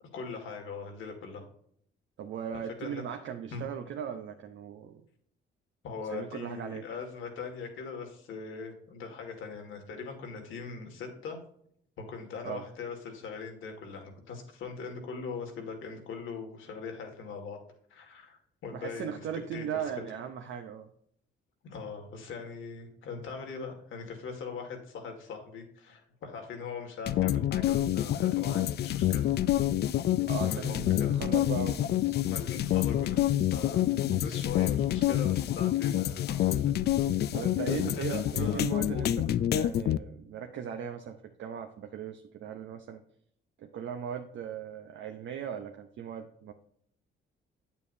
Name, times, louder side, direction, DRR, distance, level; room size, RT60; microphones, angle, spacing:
voice 1, 0.1-1.4 2.8-3.0 3.5-3.6 5.8-11.4 12.0-17.6 17.9-19.3 19.5-19.8 21.6-29.5 30.4-31.2 32.3-36.7 37.7-39.1, left 5 dB, 80° left, 3 dB, 2.0 m, -41 dB
voice 2, 2.2-5.0 6.1-6.8 12.4-12.6 18.7-20.9 30.3-32.2 37.3-39.1 39.5-43.0 43.6-46.5, right 8 dB, 70° right, 5 dB, 0.7 m, -38 dB
sound 1, 27.1-40.0, left 12 dB, 55° left, 0.4 m, -27 dB
8.6 x 7.1 x 2.6 m, 0.67 s
cardioid pair, 90°, 20 cm